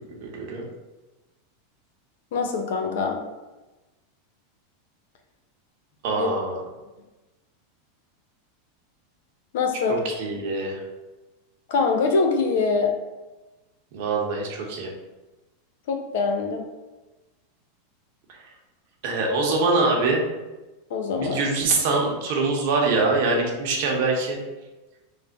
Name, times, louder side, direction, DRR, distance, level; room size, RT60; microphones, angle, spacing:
voice 1, 0.2-0.6 6.0-6.6 10.0-10.8 13.9-14.9 19.0-20.2 21.2-24.4, right 3 dB, 65° right, 0 dB, 0.9 m, -24 dB
voice 2, 2.3-3.2 6.1-6.3 9.5-10.0 11.7-12.9 15.9-16.6 20.9-21.4, left 4 dB, 70° left, 4 dB, 0.6 m, -23 dB
3.3 x 2.0 x 3.9 m, 1.1 s
supercardioid pair, 125°, 0 cm